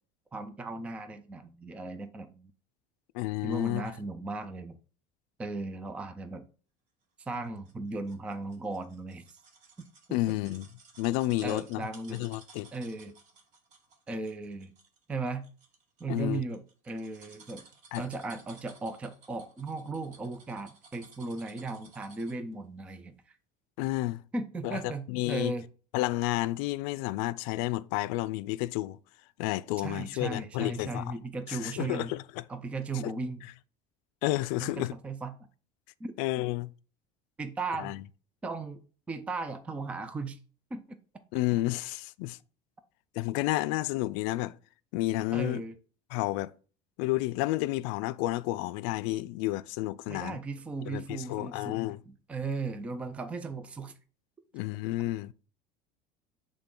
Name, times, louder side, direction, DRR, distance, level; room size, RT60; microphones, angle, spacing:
voice 1, 0.3-2.5 3.4-4.8 5.4-6.5 7.3-9.3 9.8-10.2 11.4-12.2 12.7-13.1 14.1-14.7 15.1-15.5 16.0-17.6 18.0-23.3 24.3-25.7 29.8-32.1 32.5-33.4 34.6-35.4 36.0-36.1 37.4-38.0 38.4-38.8 39.1-40.4 40.7-40.8 45.3-45.8 50.1-51.8 52.1-53.9, right 3 dB, 5° right, 0.3 m, -36 dB
voice 2, 3.1-3.9 10.1-10.7 11.0-12.7 16.1-16.4 17.9-18.0 23.8-24.2 24.6-25.5 25.9-29.0 29.4-31.2 31.5-32.2 33.0-33.1 34.2-34.9 36.2-36.7 37.8-38.0 41.3-42.4 43.2-44.6 44.9-45.6 46.1-46.5 47.0-50.4 50.8-52.0 54.5-55.3, left 17 dB, 70° left, 0.4 m, -31 dB
sound 1, 7.3-22.5 22.9-23.0, right 4 dB, 40° right, 1.2 m, -56 dB
8.1 x 3.7 x 3.7 m
cardioid pair, 175°, 18 cm